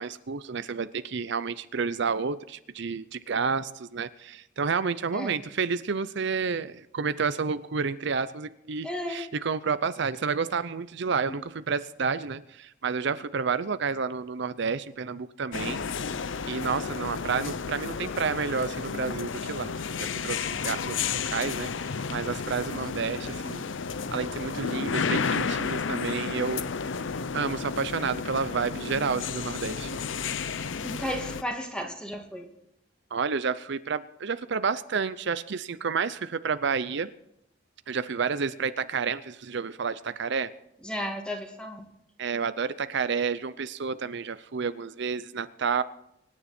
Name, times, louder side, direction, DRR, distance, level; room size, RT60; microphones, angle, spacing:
voice 1, 0.0-15.8 16.1-23.6 24.1-26.6 27.3-30.0 33.1-37.1 37.9-40.5 42.2-45.8, right 5 dB, 65° right, 13 dB, 0.6 m, -30 dB
voice 2, 8.8-9.2 11.3-11.4 30.8-32.5 40.8-41.9, equal, 5° left, 3 dB, 2.3 m, -34 dB
sound 1, 15.5-31.4, left 5 dB, 75° left, 0.6 m, -32 dB
25.0 x 9.9 x 4.3 m, 0.80 s
head